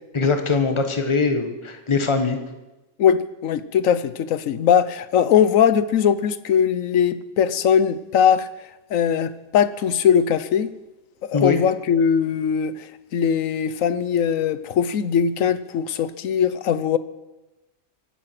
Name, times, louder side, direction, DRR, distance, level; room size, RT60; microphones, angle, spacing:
voice 1, 0.1-2.4 11.3-11.6, left 4 dB, 20° left, 6 dB, 1.3 m, -21 dB
voice 2, 3.0-8.5 8.9-10.7 11.2-17.0, left 8 dB, 65° left, 14 dB, 1.1 m, -20 dB
24.0 x 10.0 x 5.9 m, 1.1 s
omnidirectional pair, 1.6 m